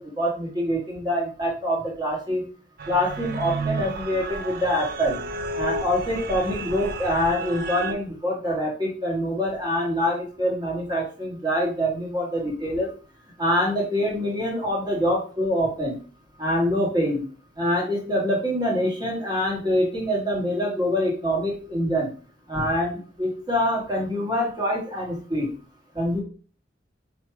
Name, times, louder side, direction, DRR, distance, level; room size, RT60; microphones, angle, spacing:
voice 1, 0.0-2.4 2.9-5.2 5.6-12.9 13.4-16.0 16.4-17.2 17.6-22.1 22.5-25.5 25.9-26.2, equal, 20° right, -3 dB, 1.2 m, -25 dB
sound 1, 2.8-7.9, right 3 dB, 50° right, 0.4 m, -32 dB
4.5 x 2.7 x 3.0 m, 0.40 s
head